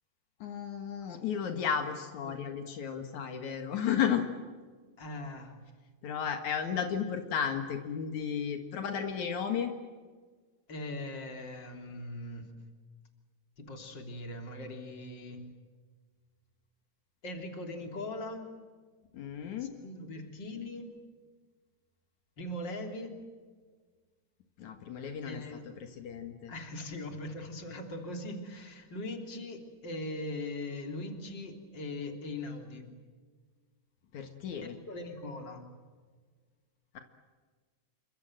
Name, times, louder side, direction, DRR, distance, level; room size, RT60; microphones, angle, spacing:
voice 1, 0.4-4.3 6.0-9.7 19.1-19.7 24.6-25.4 26.0-26.5 34.1-34.8, left 8 dB, 75° left, 6 dB, 3.1 m, -33 dB
voice 2, 5.0-5.6 10.7-12.5 13.6-15.5 17.2-18.5 19.6-20.9 22.4-23.2 25.2-25.7 26.5-32.9 34.5-35.7, left 1 dB, 35° left, 4 dB, 3.8 m, -40 dB
28.5 x 25.0 x 7.7 m, 1.5 s
omnidirectional pair, 3.4 m